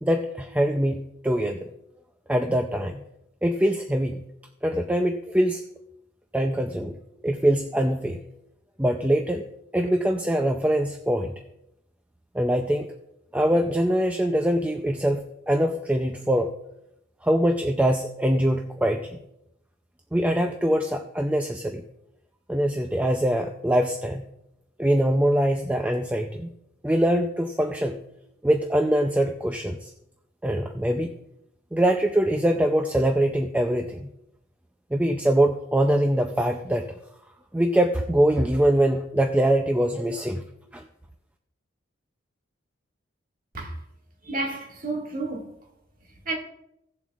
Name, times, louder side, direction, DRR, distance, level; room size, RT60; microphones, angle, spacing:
voice 1, 0.0-1.6 2.3-3.0 3.4-4.2 4.6-5.6 6.3-7.0 7.2-8.2 8.8-9.4 9.7-11.3 12.3-12.9 13.3-15.2 15.5-16.5 17.2-19.2 20.1-21.8 22.5-24.2 24.8-26.5 26.8-28.0 28.4-29.9 30.4-31.1 31.7-34.1 34.9-36.9 37.5-40.4 40.7-40.8, right 1 dB, 5° right, 0.4 m, -23 dB
voice 2, 44.2-45.5 46.3-46.4, right 2 dB, 45° right, 1.9 m, -30 dB
17.5 x 7.3 x 2.4 m
head